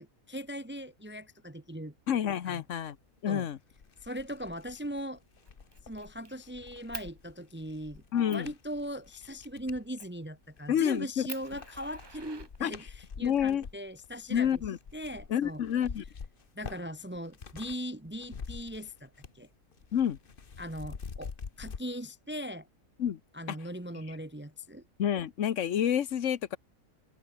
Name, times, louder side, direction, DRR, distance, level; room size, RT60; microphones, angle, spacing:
voice 1, 0.0-1.9 2.4-2.6 3.3-3.5 4.0-5.2 5.8-8.0 8.3-14.6 14.9-15.6 16.5-19.5 20.6-21.3 21.6-22.7 23.3-24.8, equal, 10° right, 1.4 m, -39 dB
voice 2, 2.1-3.0 3.2-3.6 8.1-8.5 10.7-11.3 12.6-12.8 13.2-13.7 14.3-14.8 15.3-16.0 19.9-20.2 23.0-23.2 23.5-23.6 24.1-24.2 25.0-26.6, left 9 dB, 60° left, 1.2 m, -28 dB
sound 1, 3.2-3.3 3.7-9.9 10.4-11.0 11.3-17.8 18.1-19.5 19.7-21.8, left 5 dB, 40° left, 1.3 m, -46 dB
Fire, 4.7-5.0 5.4-6.3 6.9-7.1 7.7-7.8 8.3-8.5 10.0-10.3 10.7-10.8 11.3-13.1 14.1-15.1, right 5 dB, 40° right, 0.4 m, -46 dB
open air
omnidirectional pair, 1.5 m